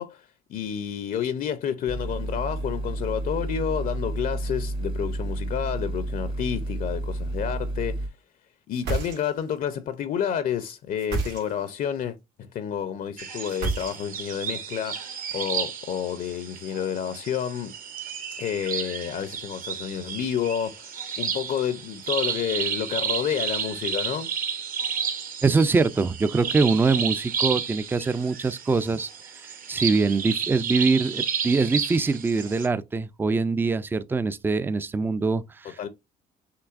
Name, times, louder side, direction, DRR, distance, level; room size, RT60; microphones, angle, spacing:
voice 1, 0.0-8.1 8.7-17.8 18.4-24.3 35.6-35.9, left 8 dB, 55° left, 0.5 m, -30 dB
sound 1, 1.9-8.1, right 1 dB, 30° right, 0.7 m, -31 dB
sound 2, 8.7-9.6 11.0-11.8 13.5-14.3, right 4 dB, 80° right, 2.2 m, -30 dB
sound 3, 13.2-32.7, right 7 dB, 55° right, 1.0 m, -32 dB
voice 2, 25.4-35.9, right 4 dB, 10° right, 0.3 m, -24 dB
5.9 x 3.1 x 2.4 m
cardioid pair, 110°, 17 cm